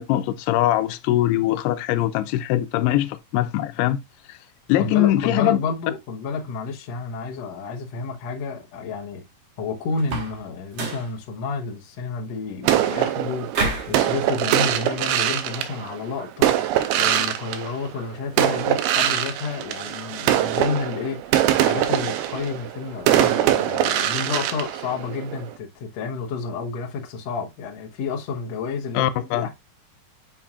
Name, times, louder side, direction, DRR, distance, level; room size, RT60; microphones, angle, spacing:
voice 1, 0.0-4.0 4.3-4.4 4.7-5.6 28.9-29.5, left 14 dB, 90° left, 2.7 m, -22 dB
voice 2, 4.8-9.2 9.6-16.5 17.0-29.5, left 4 dB, 70° left, 1.6 m, -30 dB
sound 1, 10.0-10.4 10.7-11.1 13.5-14.0, right 3 dB, 55° right, 1.9 m, -27 dB
sound 2, 12.6-18.0 18.4-25.5, right 12 dB, 90° right, 2.6 m, -23 dB
7.4 x 5.7 x 2.4 m
omnidirectional pair, 4.5 m